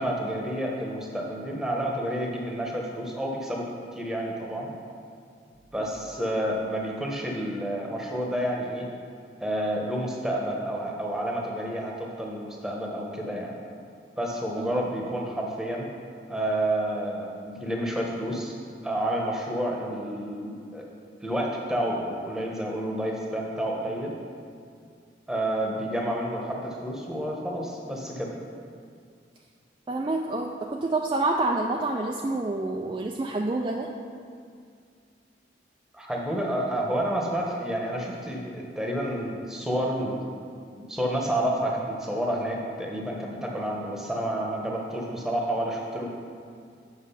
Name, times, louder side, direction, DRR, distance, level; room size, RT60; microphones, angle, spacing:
voice 1, 0.0-4.7 5.7-8.9 9.4-13.6 14.2-15.9 16.3-18.5 18.8-20.9 21.2-24.1 25.3-28.3 35.9-40.2 40.9-46.1, right 1 dB, 5° right, -2 dB, 1.0 m, -29 dB
voice 2, 29.9-33.9, right 2 dB, 25° right, 1 dB, 0.3 m, -28 dB
8.1 x 6.1 x 5.6 m, 2.3 s
head